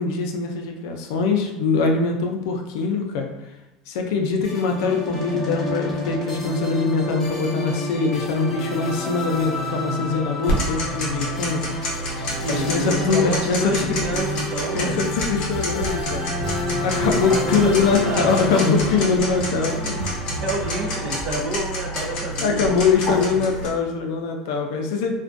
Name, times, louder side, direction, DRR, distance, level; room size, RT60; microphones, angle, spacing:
voice 1, 0.0-3.3 3.9-11.8 12.5-14.0 14.7-16.3 16.8-20.0 22.4-25.2, left 4 dB, 80° left, 3 dB, 0.4 m, -23 dB
sound 1, 4.4-21.8, left 2 dB, 15° left, 0.8 m, -30 dB
Tick-tock, 10.5-23.7, equal, 45° left, 0.7 m, -29 dB
voice 2, 12.4-15.0 17.2-17.7 18.0-18.7 20.4-23.4, right 2 dB, 45° right, 0 dB, 0.6 m, -29 dB
sound 2, 14.0-14.4 14.9-22.1, right 2 dB, 70° right, 0.9 m, -33 dB
2.4 x 2.2 x 2.5 m, 1.0 s
supercardioid pair, 130°, 2 cm